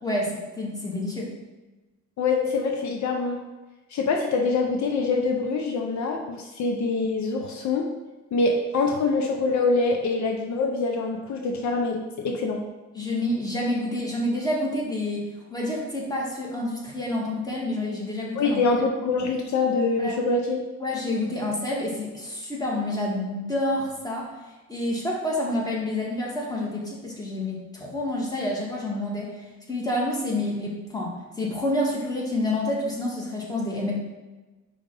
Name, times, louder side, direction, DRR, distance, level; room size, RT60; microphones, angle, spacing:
voice 1, 0.0-1.3 12.9-15.2 15.5-18.6 20.0-20.1 20.8-24.3 24.7-29.3 29.7-33.9, left 1 dB, 10° left, -3 dB, 1.7 m, -28 dB
voice 2, 2.2-3.4 3.9-7.9 8.3-12.6 18.3-20.6, left 3 dB, 70° left, 2 dB, 0.8 m, -25 dB
5.0 x 3.4 x 5.4 m, 1.1 s
cardioid pair, 90°, 30 cm